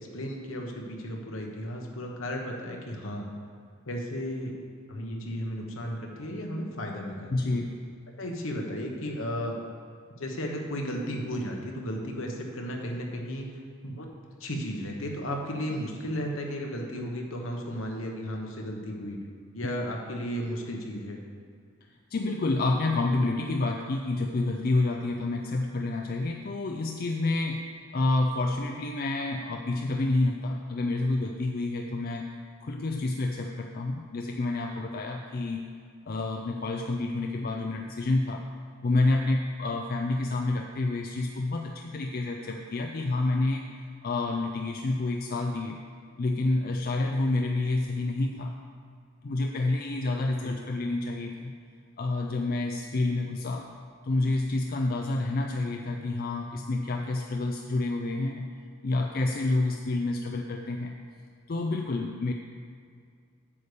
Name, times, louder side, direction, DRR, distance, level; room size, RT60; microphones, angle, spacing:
voice 1, 0.0-3.3 3.8-4.5 4.9-7.5 8.2-9.6 10.2-13.5 13.8-14.1 14.4-19.2 19.5-21.2 50.4-50.5, equal, 70° left, 1 dB, 1.2 m, -34 dB
voice 2, 7.3-7.8 22.1-32.3 32.6-35.7 36.1-38.5 38.8-43.7 44.0-45.8 46.2-48.5 49.2-51.5 52.0-53.7 54.0-58.5 58.8-61.0 61.5-62.3, left 2 dB, 45° left, 2 dB, 0.4 m, -28 dB
8.5 x 6.8 x 5.0 m, 2.2 s
head